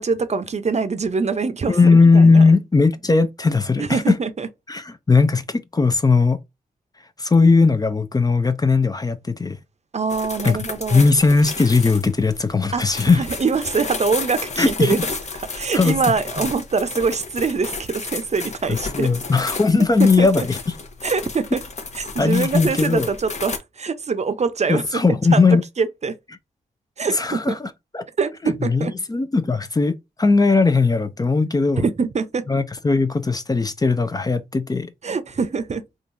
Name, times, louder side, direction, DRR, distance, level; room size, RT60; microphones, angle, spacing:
voice 1, 0.0-2.4 3.8-4.5 9.9-11.1 12.7-15.0 15.5-19.1 20.0-20.5 21.0-21.6 21.9-25.4 25.8-26.1 27.0-27.6 28.2-28.9 31.8-32.5 35.0-35.8, right 5 dB, 45° right, 0.6 m, -24 dB
voice 2, 1.7-4.2 4.7-6.4 7.2-9.6 10.4-10.6 10.9-13.2 14.6-15.0 15.7-16.0 18.7-20.6 22.2-23.1 24.7-25.6 27.1-28.0 28.4-31.8 32.5-34.9, left 4 dB, 25° left, 0.5 m, -18 dB
sound 1, 10.1-23.6, left 4 dB, 45° left, 0.9 m, -32 dB
3.7 x 2.3 x 2.5 m
supercardioid pair, 45°, 16 cm